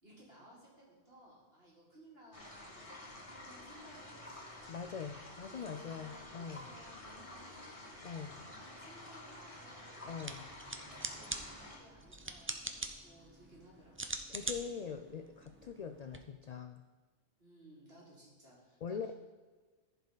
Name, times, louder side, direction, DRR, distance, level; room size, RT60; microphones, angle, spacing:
voice 1, 0.0-4.5 5.4-8.0 8.3-10.1 10.9-14.0 17.4-19.1, equal, 55° right, -5 dB, 3.2 m, -59 dB
sound 1, 2.3-11.8, left 1 dB, 30° left, 1.8 m, -50 dB
voice 2, 4.7-6.6 8.0-8.4 10.0-10.5 14.3-16.8 18.8-19.1, left 6 dB, 70° left, 8 dB, 0.4 m, -43 dB
sound 2, 10.1-16.2, right 2 dB, 20° right, 0.3 m, -44 dB
14.5 x 5.6 x 4.0 m, 1.4 s
omnidirectional pair, 1.2 m